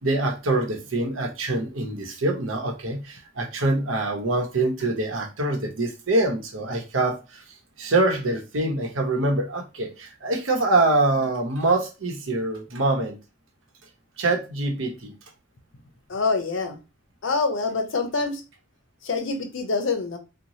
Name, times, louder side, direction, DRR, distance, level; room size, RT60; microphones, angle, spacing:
voice 1, 0.0-7.4 7.8-13.2 14.2-15.1, right 2 dB, 85° right, 0.9 m, -24 dB
voice 2, 16.1-16.8 17.2-18.4 19.0-20.2, left 4 dB, 75° left, 0.6 m, -25 dB
3.0 x 2.2 x 2.7 m
head